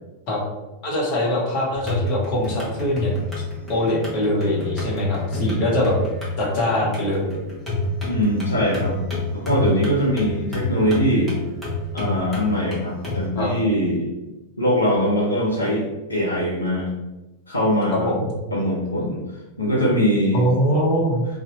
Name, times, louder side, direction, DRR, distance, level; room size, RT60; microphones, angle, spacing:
voice 1, 0.8-3.1 3.7-6.0 6.4-7.4 13.4-13.5 17.9-18.3 20.3-21.3, left 1 dB, 45° left, -3 dB, 0.8 m, -22 dB
sound 1, 1.8-13.3, left 1 dB, ahead, 1.0 m, -29 dB
voice 2, 8.0-8.9 9.3-11.4 11.9-14.1 14.6-16.9 17.5-18.1 18.5-19.2 19.6-20.5, equal, 80° left, -5 dB, 0.6 m, -22 dB
2.7 x 2.0 x 2.8 m, 1.0 s
figure-of-eight pair, 90°, 0 cm